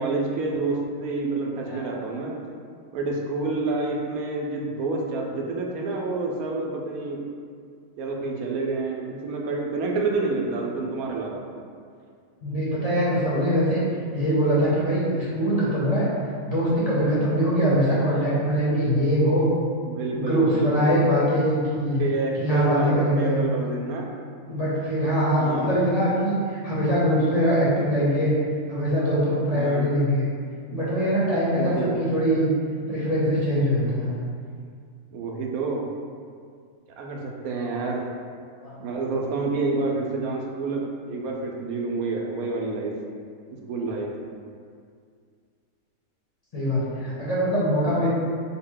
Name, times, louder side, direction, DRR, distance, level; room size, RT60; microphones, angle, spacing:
voice 1, 0.0-2.4 2.9-7.2 8.0-11.4 19.9-21.0 22.0-24.0 25.3-25.8 29.5-29.8 31.5-31.9 35.1-35.8 37.0-38.0 38.8-40.8 41.1-42.9 43.7-44.1, right 3 dB, 85° right, -1 dB, 1.0 m, -28 dB
voice 2, 12.4-13.8 14.1-16.1 16.4-19.5 20.1-22.0 22.4-23.4 24.5-28.3 28.7-30.2 30.7-32.5 32.9-34.2 38.6-38.8 46.5-48.1, equal, 30° left, -9 dB, 0.8 m, -22 dB
4.2 x 2.1 x 3.7 m, 2.1 s
omnidirectional pair, 1.5 m